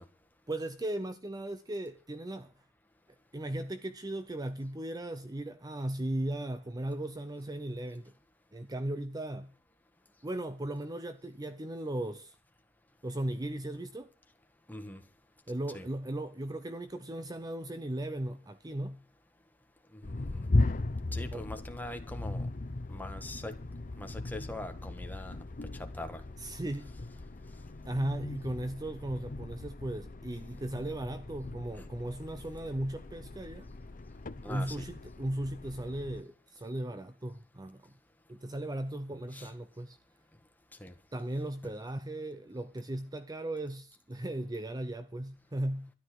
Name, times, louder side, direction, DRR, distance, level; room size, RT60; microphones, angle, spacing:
voice 1, 0.5-2.5 3.3-8.1 8.5-9.5 10.2-12.3 13.0-14.1 15.5-19.0 21.3-21.5 26.4-26.9 27.8-33.7 34.5-37.9 38.3-40.0 41.1-45.9, right 1 dB, 20° right, 0.6 m, -37 dB
voice 2, 14.7-15.0 15.7-15.9 20.0-20.5 21.1-22.5 22.9-23.6 24.0-25.4 25.7-26.2 31.8-31.9 34.4-34.8 39.3-39.5 40.8-40.9 41.6-41.7, left 1 dB, 10° left, 1.5 m, -42 dB
sound 1, 20.0-36.2, left 2 dB, 40° left, 0.8 m, -37 dB
13.0 x 11.0 x 6.2 m
head